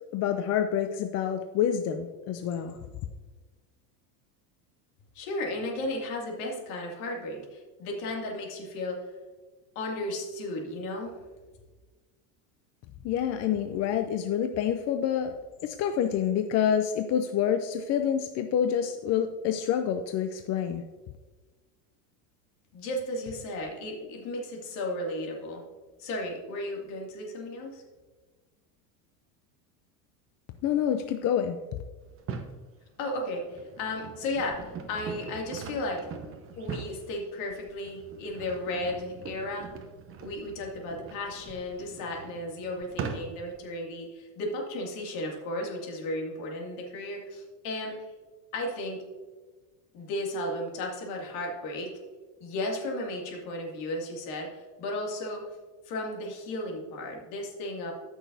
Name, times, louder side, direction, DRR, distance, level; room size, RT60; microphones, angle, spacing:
voice 1, 0.1-2.8 13.0-15.3 15.6-20.8 30.6-31.6, left 9 dB, 40° left, 8 dB, 0.5 m, -27 dB
voice 2, 5.1-9.0 9.8-11.1 22.7-25.6 26.0-27.8 33.0-36.0 36.5-39.7 40.2-48.0 48.5-49.0 49.9-51.9 52.4-55.4 55.9-57.9, left 1 dB, 70° left, 0 dB, 2.4 m, -34 dB
sound 1, 32.1-32.6 33.2-43.6, right 5 dB, 30° right, 0.8 m, -41 dB
14.0 x 6.2 x 2.7 m, 1.3 s
supercardioid pair, 130°, 44 cm